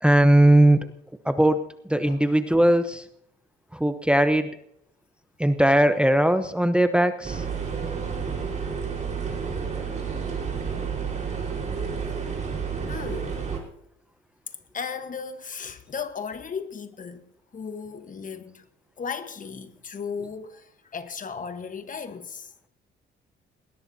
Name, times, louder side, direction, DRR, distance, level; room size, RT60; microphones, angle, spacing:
voice 1, 0.0-0.8 1.2-1.6 1.9-3.0 3.7-4.5 5.4-7.4, right 1 dB, 5° right, 0.9 m, -19 dB
sound 1, 7.2-13.6, right 6 dB, 35° right, 4.6 m, -30 dB
voice 2, 12.9-13.3 14.7-17.3 17.5-18.6 19.0-22.5, left 6 dB, 40° left, 1.3 m, -36 dB
20.5 x 18.0 x 2.8 m
cardioid pair, 90°, 20 cm